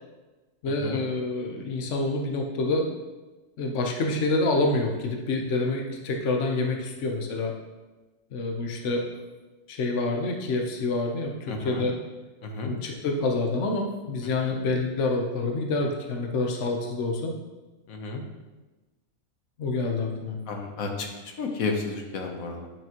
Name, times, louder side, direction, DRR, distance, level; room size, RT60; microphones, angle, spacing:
voice 1, 0.6-2.9 3.6-7.5 8.3-9.1 9.7-12.0 12.6-17.3 19.6-20.4, left 2 dB, 60° left, 2 dB, 1.1 m, -27 dB
voice 2, 11.5-11.8 12.4-12.7 14.4-14.5 17.9-18.2 20.5-21.1 21.4-22.7, left 4 dB, 80° left, 3 dB, 1.4 m, -32 dB
10.0 x 5.9 x 2.9 m, 1.2 s
omnidirectional pair, 1.4 m